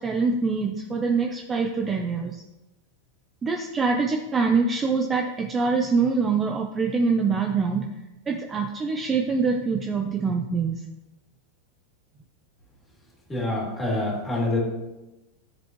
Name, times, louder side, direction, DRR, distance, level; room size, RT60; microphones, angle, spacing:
voice 1, 0.0-2.4 3.4-7.9 8.3-10.8, right 4 dB, 20° right, 2 dB, 0.7 m, -24 dB
voice 2, 13.3-14.6, left 2 dB, 10° left, -4 dB, 2.9 m, -26 dB
13.0 x 7.1 x 3.1 m, 1.0 s
supercardioid pair, 150°, 0 cm